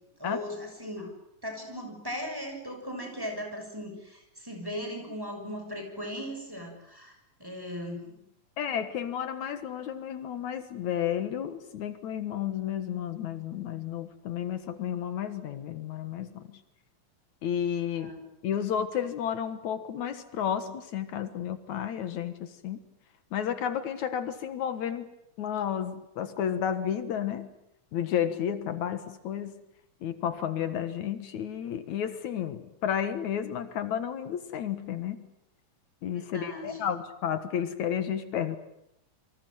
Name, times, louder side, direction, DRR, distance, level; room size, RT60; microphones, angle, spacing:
voice 1, 0.2-1.1 1.4-8.3 17.9-18.2 36.2-36.9, equal, 5° right, 3 dB, 6.7 m, -38 dB
voice 2, 8.6-16.6 17.4-18.1 18.4-22.8 23.3-25.1 25.4-27.5 27.9-29.6 30.0-35.3 36.0-38.6, left 9 dB, 80° left, 10 dB, 2.8 m, -32 dB
29.0 x 24.5 x 8.0 m, 0.77 s
omnidirectional pair, 3.4 m